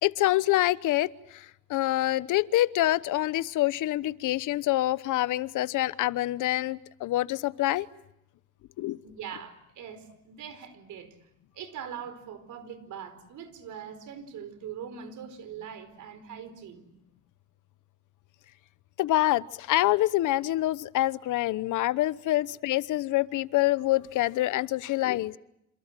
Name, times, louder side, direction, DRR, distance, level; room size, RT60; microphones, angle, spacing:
voice 1, 0.0-7.9 8.8-9.0 19.0-25.3, left 16 dB, 85° left, 17 dB, 1.0 m, -26 dB
voice 2, 9.0-11.2 11.5-16.9, right 8 dB, 80° right, 12 dB, 4.8 m, -42 dB
27.5 x 27.5 x 7.6 m, 0.79 s
cardioid pair, 90°, 30 cm